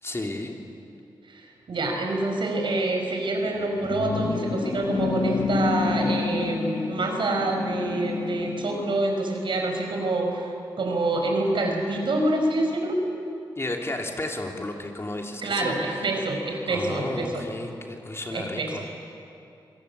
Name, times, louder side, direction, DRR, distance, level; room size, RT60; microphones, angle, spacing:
voice 1, 0.0-0.5 13.6-15.7 16.7-18.8, left 2 dB, 30° left, 2 dB, 3.1 m, -33 dB
voice 2, 1.3-13.0 15.4-17.4 18.3-18.9, right 2 dB, 70° right, 2 dB, 5.0 m, -26 dB
sound 1, 3.4-9.0, left 5 dB, 55° left, 1.0 m, -29 dB
26.5 x 18.0 x 8.5 m, 2.7 s
cardioid pair, 65°, 9 cm